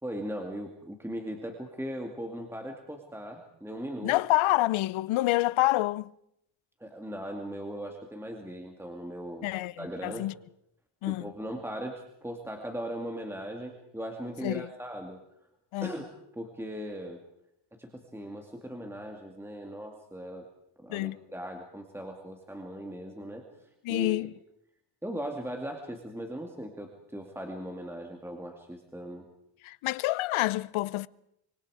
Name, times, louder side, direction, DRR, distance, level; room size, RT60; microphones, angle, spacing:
voice 1, 0.0-4.1 6.8-9.5 9.8-10.3 11.0-15.2 15.8-16.1 16.3-17.2 17.8-20.5 20.8-24.2 25.0-29.3, equal, 5° right, 2.4 m, -39 dB
voice 2, 4.0-6.1 9.4-10.3 11.0-11.3 14.4-14.7 15.7-16.0 20.9-21.2 23.8-24.3 29.6-31.1, left 18 dB, 75° left, 0.7 m, -27 dB
25.0 x 24.5 x 5.0 m
cardioid pair, 110°, 49 cm